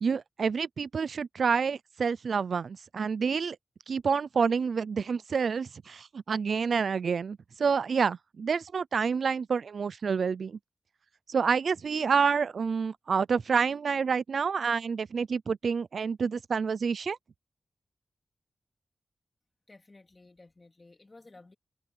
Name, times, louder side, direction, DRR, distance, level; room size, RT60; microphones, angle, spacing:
voice 1, 0.0-3.6 3.9-10.6 11.3-17.2, right 5 dB, 80° right, 0.4 m, -28 dB
voice 2, 19.7-21.5, left 2 dB, 30° left, 2.4 m, -54 dB
wide cardioid pair, 150°, 0 cm